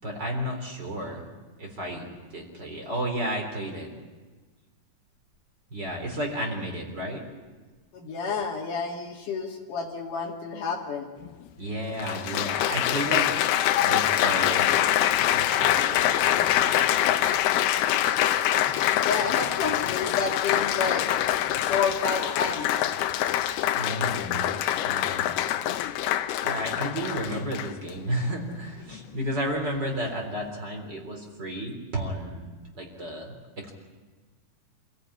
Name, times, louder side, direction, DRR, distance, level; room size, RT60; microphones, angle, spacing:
voice 1, 0.0-1.3 1.6-3.9 5.7-7.2 11.6-13.4 13.8-15.1 15.5-17.1 23.8-24.5 24.8-25.3 26.4-33.7, right 1 dB, 25° right, 2 dB, 4.0 m, -32 dB
voice 2, 7.9-11.1 19.0-21.1 21.7-22.8, left 5 dB, 60° left, 1 dB, 3.5 m, -30 dB
Applause, 11.2-11.3 12.0-27.9 28.6-29.0, left 12 dB, 85° left, 2.9 m, -25 dB
27.5 x 16.5 x 9.8 m, 1.4 s
omnidirectional pair, 4.5 m